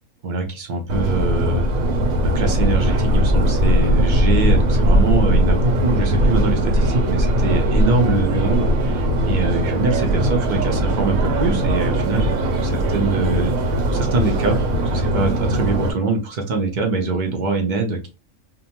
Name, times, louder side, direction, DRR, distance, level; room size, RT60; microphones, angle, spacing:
voice 1, 0.2-1.7 2.2-13.6 13.9-14.6 14.8-18.1, right 3 dB, 50° right, 3 dB, 0.5 m, -23 dB
Subway metro underground, 0.9-15.9, right 1 dB, 70° right, 1.0 m, -19 dB
2.6 x 2.2 x 2.8 m, 0.31 s
omnidirectional pair, 1.5 m